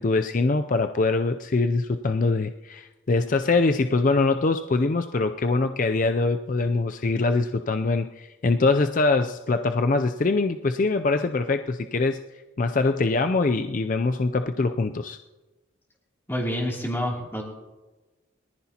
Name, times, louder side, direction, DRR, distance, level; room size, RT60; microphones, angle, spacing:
voice 1, 0.0-12.2 12.6-15.2, left 3 dB, 40° left, 8 dB, 0.4 m, -23 dB
voice 2, 16.3-17.4, equal, 10° left, -3 dB, 2.9 m, -28 dB
23.0 x 14.5 x 2.9 m, 1.2 s
head